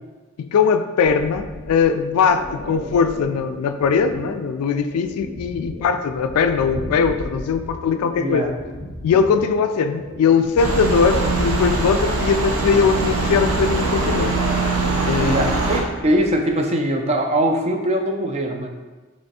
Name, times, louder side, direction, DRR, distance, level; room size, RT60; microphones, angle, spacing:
voice 1, 0.4-8.5 9.0-14.4 15.0-15.5, left 6 dB, 85° left, 13 dB, 0.3 m, -20 dB
sound 1, 1.0-16.5, equal, 40° left, 0.6 m, -36 dB
voice 2, 8.2-8.5 15.2-18.7, right 1 dB, 30° right, 3 dB, 0.4 m, -21 dB
sound 2, 10.6-15.8, right 3 dB, 75° right, 0.7 m, -22 dB
3.3 x 3.0 x 4.1 m, 1.3 s
head